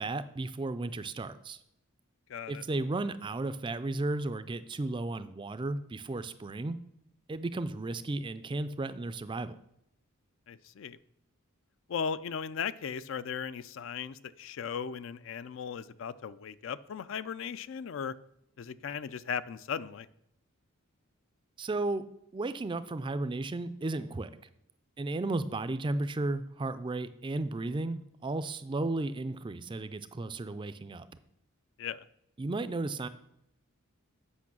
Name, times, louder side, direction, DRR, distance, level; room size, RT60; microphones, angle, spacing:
voice 1, 0.0-1.6 2.5-6.8 7.3-9.6 21.6-22.1 22.3-24.3 25.0-31.2 32.4-33.1, right 2 dB, 20° right, 13 dB, 0.3 m, -34 dB
voice 2, 2.3-2.6 10.5-11.0 11.9-18.1 18.6-20.1 31.8-32.0, left 7 dB, 60° left, 16 dB, 0.4 m, -37 dB
8.4 x 5.5 x 6.0 m, 0.77 s
head